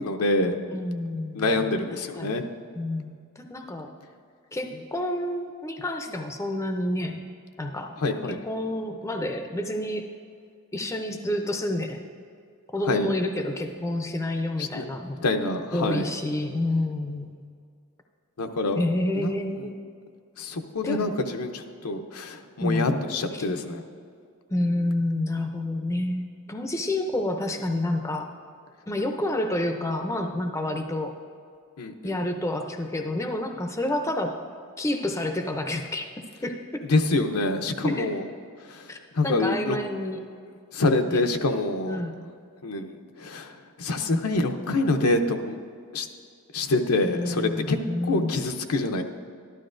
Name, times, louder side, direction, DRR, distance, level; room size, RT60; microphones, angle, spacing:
voice 1, 0.0-0.6 1.3-2.4 8.0-8.4 12.9-13.1 14.6-14.8 15.2-16.1 18.4-18.8 19.2-19.3 20.4-23.8 31.8-32.1 36.9-38.2 39.2-39.8 40.7-42.0 42.6-43.5 43.8-45.6 45.9-46.1 46.5-47.8 48.1-49.0, left 2 dB, 85° left, 6 dB, 0.7 m, -26 dB
voice 2, 0.7-2.4 2.7-3.9 4.5-7.2 7.6-8.0 8.3-10.1 10.7-12.0 12.7-15.3 15.7-17.4 18.7-19.7 20.8-21.1 22.6-23.0 23.3-23.5 24.5-28.3 28.9-31.1 32.0-34.3 34.8-36.1 36.4-36.6 37.8-38.2 38.9-39.0 39.2-40.2 41.1-41.2 41.9-42.2 47.1-48.4, left 1 dB, 15° left, 4 dB, 0.5 m, -29 dB
12.5 x 12.0 x 2.5 m, 2.2 s
head